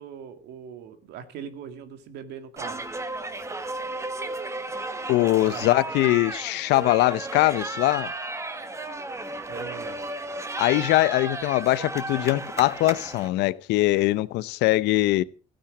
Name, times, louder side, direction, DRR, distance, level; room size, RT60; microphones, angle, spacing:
voice 1, 0.0-2.8 5.4-5.7 9.5-10.0, right 8 dB, 80° right, 2.1 m, -40 dB
sound 1, 2.6-13.3, right 2 dB, 15° right, 1.5 m, -34 dB
voice 2, 5.1-8.1 10.6-15.2, left 18 dB, 85° left, 0.7 m, -22 dB
15.5 x 8.9 x 6.1 m
cardioid pair, 110°, 17 cm